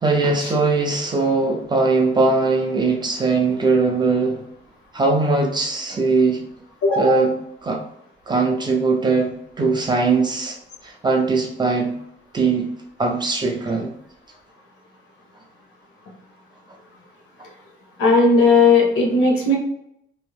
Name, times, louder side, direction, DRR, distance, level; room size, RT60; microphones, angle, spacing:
voice 1, 0.0-4.4 4.9-6.4 7.0-7.3 7.6-7.8 8.3-10.6 10.8-11.9 12.3-12.7 13.0-13.9, right 3 dB, 20° right, 1 dB, 0.4 m, -20 dB
voice 2, 6.8-7.2 18.0-19.5, left 3 dB, 85° left, 0 dB, 0.9 m, -16 dB
2.6 x 2.0 x 3.1 m, 0.75 s
cardioid pair, 160°, 21 cm